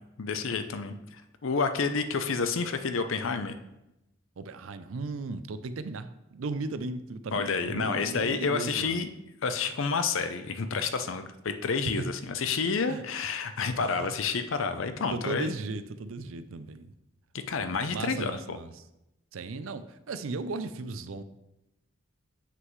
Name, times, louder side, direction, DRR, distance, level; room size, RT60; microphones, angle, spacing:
voice 1, 0.2-3.6 7.3-9.1 9.4-15.5 17.5-18.6, left 5 dB, 70° left, 9 dB, 0.6 m, -29 dB
voice 2, 4.4-9.0 12.0-12.1 12.9-13.0 13.8-14.1 14.8-16.9 17.9-18.8 19.3-21.2, right 3 dB, 70° right, 12 dB, 0.5 m, -36 dB
7.6 x 6.3 x 3.1 m, 0.89 s
head